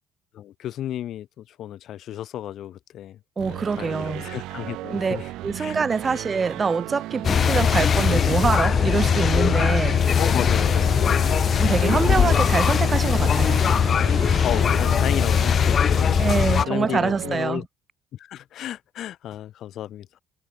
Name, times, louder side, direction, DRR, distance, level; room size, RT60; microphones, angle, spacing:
voice 1, 0.3-5.3 5.6-5.8 6.0-6.2 10.1-11.3 14.4-16.3 16.7-17.6 18.1-20.2, left 12 dB, 60° left, 1.4 m, -33 dB
voice 2, 3.4-4.2 4.9-5.2 5.4-10.0 11.6-13.6 16.2-17.6, right 5 dB, 25° right, 0.4 m, -25 dB
sound 1, 3.4-17.4, right 17 dB, 80° right, 4.0 m, -35 dB
sound 2, 7.2-16.6, left 7 dB, 40° left, 0.6 m, -20 dB
cardioid pair, 130°, 0 cm